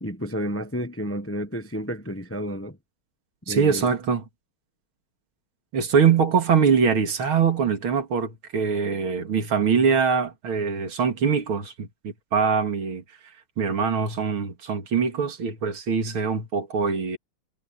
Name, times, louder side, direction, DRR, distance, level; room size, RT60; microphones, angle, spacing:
voice 1, 0.0-2.8 3.5-3.9, equal, 10° left, 0.8 m, -31 dB
voice 2, 3.5-4.2 5.7-13.0 13.6-17.2, right 6 dB, 80° right, 3.1 m, -23 dB
omnidirectional pair, 2.3 m